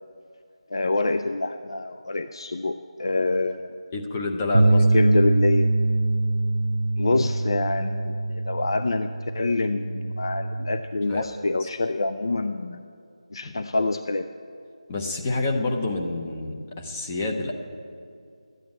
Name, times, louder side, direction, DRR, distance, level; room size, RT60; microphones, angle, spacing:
voice 1, 0.7-3.8 4.6-5.7 7.0-12.8 13.3-14.3, left 2 dB, 45° left, 9 dB, 0.5 m, -26 dB
voice 2, 3.9-4.9 11.1-11.3 11.6-11.7 13.4-13.5 14.9-17.5, left 2 dB, 15° left, 2 dB, 0.7 m, -28 dB
sound 1, 4.5-10.8, right 2 dB, 70° right, 0.6 m, -23 dB
13.0 x 9.1 x 9.2 m, 2.4 s
figure-of-eight pair, 175°, 3 cm